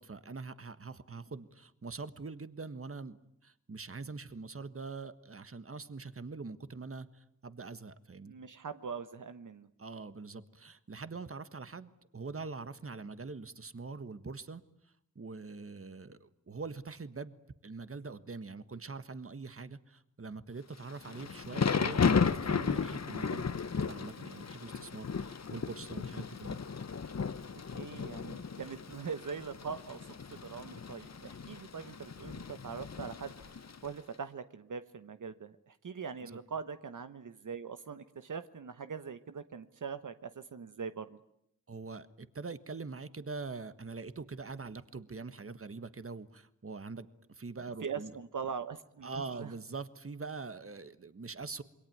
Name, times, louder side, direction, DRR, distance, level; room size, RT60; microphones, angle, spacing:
voice 1, 0.0-3.2 3.4-8.4 9.8-14.6 15.1-17.3 17.6-23.5 23.9-26.6 36.2-36.3 41.7-48.2 49.0-51.6, right 4 dB, 45° right, 13 dB, 1.5 m, -43 dB
voice 2, 8.2-9.7 27.7-30.2 30.4-33.3 33.8-41.2 47.8-49.5, right 6 dB, 75° right, 10 dB, 1.1 m, -42 dB
Thunder / Rain, 20.8-33.9, left 5 dB, 55° left, 1.1 m, -35 dB
27.0 x 22.5 x 9.4 m, 0.75 s
wide cardioid pair, 60°, 31 cm